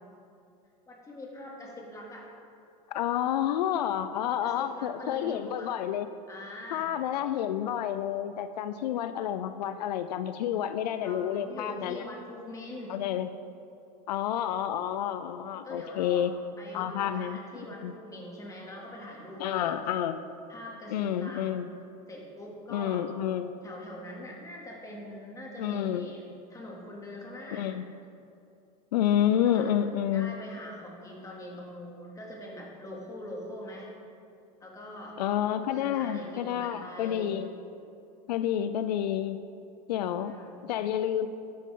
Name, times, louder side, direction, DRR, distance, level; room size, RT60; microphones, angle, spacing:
voice 1, 0.9-2.2 4.4-5.8 6.3-6.9 11.0-13.0 15.6-16.3 16.6-19.7 20.5-21.4 22.1-23.0 23.6-26.2 26.5-27.7 29.3-29.8 30.1-33.9 34.6-35.2 35.6-37.3 39.9-40.6, left 1 dB, 15° left, -3 dB, 2.8 m, -43 dB
voice 2, 2.9-6.1 6.7-12.1 12.9-13.3 14.1-16.3 16.7-17.4 17.8-17.9 19.4-20.2 20.9-21.7 22.7-23.5 25.6-26.1 27.5-28.0 28.9-30.3 35.2-37.5 38.3-39.4 39.9-40.3 40.6-41.3, left 10 dB, 85° left, 11 dB, 0.6 m, -29 dB
13.0 x 10.5 x 3.9 m, 2.5 s
supercardioid pair, 120°, 21 cm